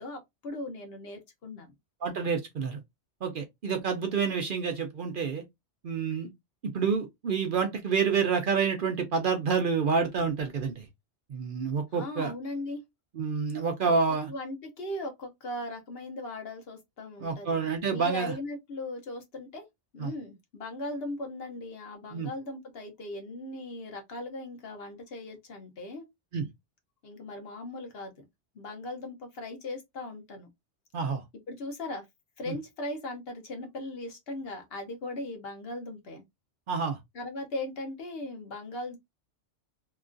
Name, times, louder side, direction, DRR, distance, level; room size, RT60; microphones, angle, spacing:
voice 1, 0.0-1.7 11.9-12.8 14.3-19.7 19.9-26.0 27.0-28.3 28.5-30.5 31.5-32.0 32.4-36.2 37.1-39.0, left 1 dB, 60° left, 1.0 m, -38 dB
voice 2, 2.0-2.8 3.2-5.4 5.8-6.3 6.7-10.9 11.3-12.3 13.1-14.3 17.2-18.3 20.0-20.1 22.1-22.3 26.3-26.5 30.9-31.2 32.5-32.6 36.7-37.0, right 5 dB, 55° right, 0.6 m, -28 dB
2.9 x 2.3 x 2.4 m
omnidirectional pair, 1.2 m